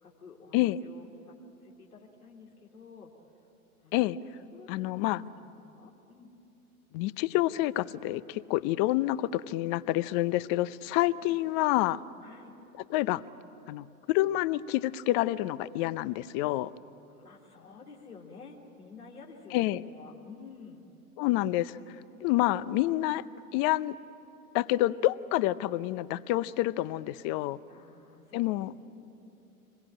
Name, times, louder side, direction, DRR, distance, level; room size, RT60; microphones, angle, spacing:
voice 1, 0.0-1.4 1.6-3.1 3.8-4.1 4.5-6.3 11.1-11.4 12.2-12.6 17.1-20.9 27.7-28.9, left 5 dB, 85° left, -2 dB, 3.1 m, -51 dB
voice 2, 4.7-5.2 6.9-12.0 12.9-13.2 13.7-16.7 19.5-19.8 21.2-21.8 22.2-23.2 23.5-23.9 24.5-27.6 28.3-28.7, left 16 dB, 40° left, 18 dB, 0.7 m, -28 dB
25.5 x 21.5 x 8.9 m, 2.8 s
hypercardioid pair, 95°, 43 cm